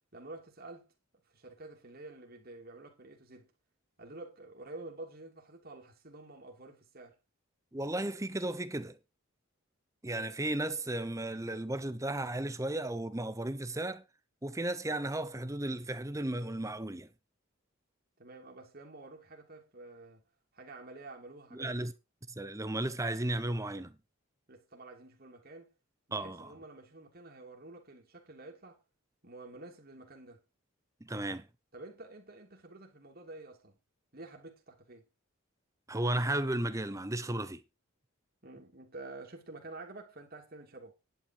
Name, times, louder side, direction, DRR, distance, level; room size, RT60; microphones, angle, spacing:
voice 1, 0.1-0.9 1.1-3.5 4.0-7.2 18.2-20.2 20.5-21.8 24.5-25.7 26.1-28.8 29.2-30.4 31.7-33.8 34.1-35.1 38.4-40.9, right 2 dB, 45° right, 3.1 m, -49 dB
voice 2, 7.7-9.0 10.0-14.0 14.4-17.1 21.5-21.9 22.3-24.0 26.1-26.5 31.0-31.5 35.9-37.6, right 1 dB, 15° right, 0.9 m, -34 dB
10.5 x 8.8 x 4.8 m
head